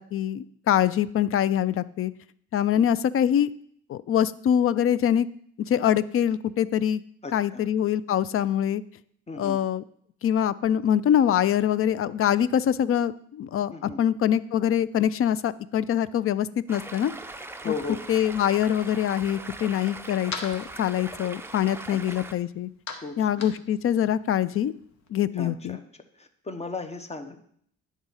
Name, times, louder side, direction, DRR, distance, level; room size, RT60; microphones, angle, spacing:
voice 1, 0.0-2.1 2.5-3.5 3.9-5.3 5.7-7.0 7.3-8.8 9.4-9.8 10.2-17.1 17.6-17.7 18.1-22.7 23.2-24.7 25.1-25.8, left 10 dB, 45° left, 18 dB, 0.4 m, -24 dB
voice 2, 7.2-7.7 9.3-9.6 13.7-14.0 17.6-18.0 21.9-22.0 23.0-23.5 25.3-25.9 26.2-27.4, left 4 dB, 20° left, 8 dB, 0.9 m, -36 dB
Stream, 16.7-22.3, right 2 dB, 10° right, 0.5 m, -40 dB
sound 1, 19.4-25.1, left 4 dB, 65° left, 1.2 m, -43 dB
10.0 x 3.6 x 5.6 m, 0.65 s
cardioid pair, 90°, 30 cm